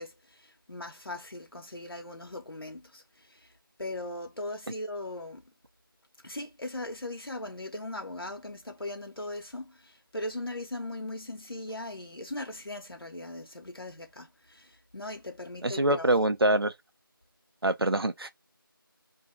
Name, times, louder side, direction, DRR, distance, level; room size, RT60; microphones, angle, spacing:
voice 1, 0.0-3.5 3.8-5.5 6.2-16.1, left 1 dB, 85° left, 0.8 m, -39 dB
voice 2, 15.6-16.7 17.6-18.3, right 1 dB, 90° right, 0.6 m, -25 dB
2.5 x 2.3 x 2.7 m
figure-of-eight pair, 175°, 12 cm